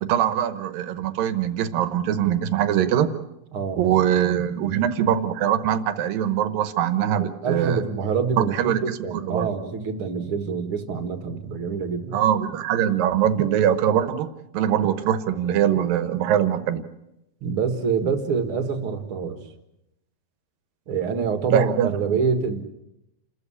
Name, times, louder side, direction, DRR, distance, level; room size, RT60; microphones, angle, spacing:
voice 1, 0.0-3.1 3.8-7.8 8.4-9.5 12.1-14.3 14.5-16.8 21.5-22.2, right 10 dB, 80° right, 11 dB, 2.9 m, -22 dB
voice 2, 3.5-3.9 7.0-12.2 17.4-19.4 20.9-22.6, right 5 dB, 45° right, 8 dB, 2.1 m, -26 dB
29.0 x 13.5 x 9.9 m, 0.88 s
omnidirectional pair, 4.1 m